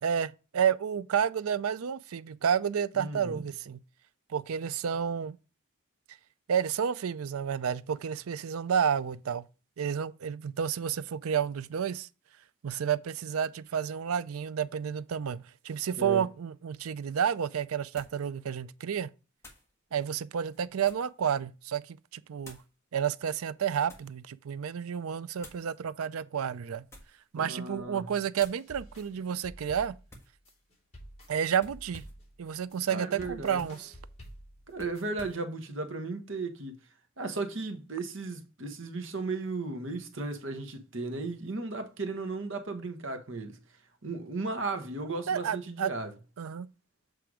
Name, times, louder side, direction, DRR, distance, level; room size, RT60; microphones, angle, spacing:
voice 1, 0.0-3.8 4.3-5.4 6.5-9.4 9.8-12.1 12.6-19.1 19.9-22.6 22.9-26.8 27.3-30.0 31.3-32.0 32.4-33.9 45.3-45.9 46.4-46.7, right 8 dB, 90° right, 0.4 m, -30 dB
voice 2, 2.9-3.4 16.0-16.2 27.4-28.1 32.9-33.7 34.7-36.7 37.2-43.6 44.0-46.1, right 3 dB, 60° right, 1.3 m, -35 dB
sound 1, 16.8-16.9 18.0-18.2 19.4-19.7 20.4-21.2 22.4-22.7 23.5-24.2 25.4-25.7 26.8-27.3 27.7-27.9 28.4-28.7 30.1-30.4 31.6-32.3 33.2-33.8 34.7-35.4, left 1 dB, 15° left, 1.6 m, -52 dB
sound 2, 28.4-35.2, equal, 30° left, 3.2 m, -50 dB
7.8 x 3.4 x 4.8 m
head